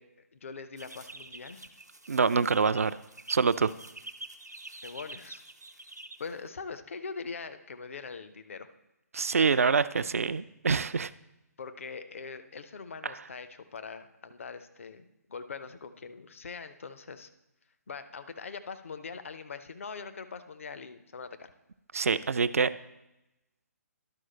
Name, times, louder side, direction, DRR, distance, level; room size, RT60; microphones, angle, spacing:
voice 1, 0.0-1.7 4.8-5.4 6.2-8.7 9.3-9.8 11.6-17.3 17.9-21.5, left 5 dB, 50° left, 10 dB, 0.6 m, -42 dB
sound 1, 0.8-6.5, right 2 dB, 85° right, 0.8 m, -47 dB
voice 2, 2.1-3.0 3.3-3.7 9.1-11.1 13.0-13.1 21.9-22.7, right 5 dB, 60° right, 15 dB, 0.4 m, -25 dB
11.5 x 4.7 x 4.3 m, 0.94 s
figure-of-eight pair, 135°, 9 cm